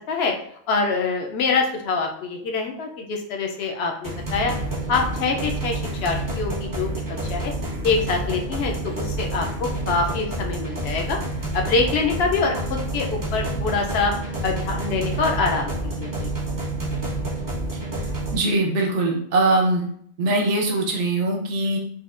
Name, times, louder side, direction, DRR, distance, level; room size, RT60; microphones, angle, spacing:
voice 1, 0.7-4.5 4.9-6.9 7.3-7.5 7.8-11.2 11.5-16.3, left 4 dB, 60° left, 2 dB, 0.7 m, -25 dB
sound 1, 4.0-18.4, right 1 dB, 35° right, 0.3 m, -28 dB
voice 2, 18.3-19.9 20.2-21.8, right 2 dB, 65° right, 1 dB, 0.9 m, -21 dB
4.2 x 2.3 x 2.4 m, 0.65 s
omnidirectional pair, 1.4 m